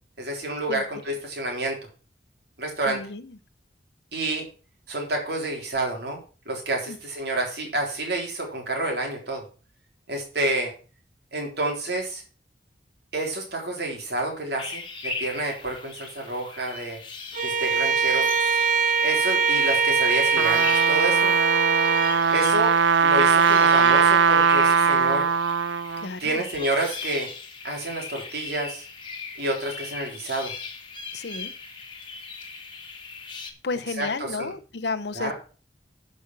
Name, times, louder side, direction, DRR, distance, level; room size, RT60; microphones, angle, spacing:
voice 1, 0.2-1.8 2.6-3.0 4.1-4.4 4.9-9.4 10.1-10.7 11.3-12.2 13.1-17.0 17.4-18.3 19.0-21.4 22.3-22.7 23.0-25.3 26.2-27.3 27.6-28.8 29.4-30.5 34.0-34.5 35.1-35.3, right 2 dB, 65° right, 1 dB, 3.8 m, -29 dB
voice 2, 2.9-3.4 6.9-7.0 26.0-26.4 31.1-31.5 33.6-35.3, left 4 dB, 70° left, 13 dB, 0.8 m, -32 dB
sound 1, 14.6-33.5, left 4 dB, 30° left, 1.6 m, -38 dB
Bowed string instrument, 17.3-22.2, right 5 dB, 45° right, 0.7 m, -22 dB
Trumpet, 20.1-26.1, right 6 dB, 90° right, 0.4 m, -20 dB
11.0 x 5.4 x 6.1 m, 0.37 s
head